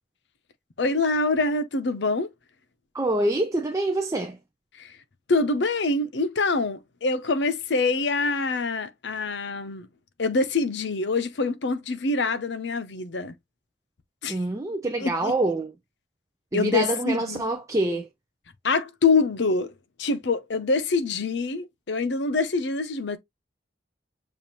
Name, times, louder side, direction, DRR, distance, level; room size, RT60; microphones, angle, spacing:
voice 1, 0.8-2.3 4.7-4.9 5.3-9.9 10.2-13.3 14.2-14.4 15.0-15.3 16.5-17.4 18.6-19.7 20.0-23.2, left 3 dB, 70° left, 0.7 m, -25 dB
voice 2, 2.9-4.4 14.3-15.7 16.5-18.1, right 2 dB, 15° right, 0.4 m, -26 dB
7.0 x 2.5 x 2.9 m
head